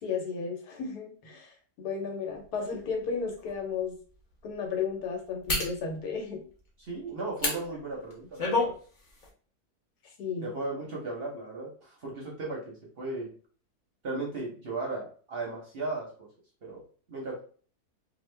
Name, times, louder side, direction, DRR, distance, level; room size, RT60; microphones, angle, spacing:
voice 1, 0.0-1.5 1.8-3.9 4.4-6.4 10.2-10.5, left 5 dB, 80° left, 2 dB, 1.3 m, -33 dB
sound 1, 2.7-2.8 3.4-3.5 5.5-5.8 7.4-7.6 8.1-8.7 9.1-9.3, left 3 dB, 45° left, 0.7 m, -28 dB
voice 2, 6.8-8.7 10.4-13.3 14.0-16.3 16.6-16.8 17.1-17.4, right 3 dB, 50° right, -2 dB, 0.7 m, -36 dB
2.8 x 2.2 x 3.2 m, 0.43 s
omnidirectional pair, 1.7 m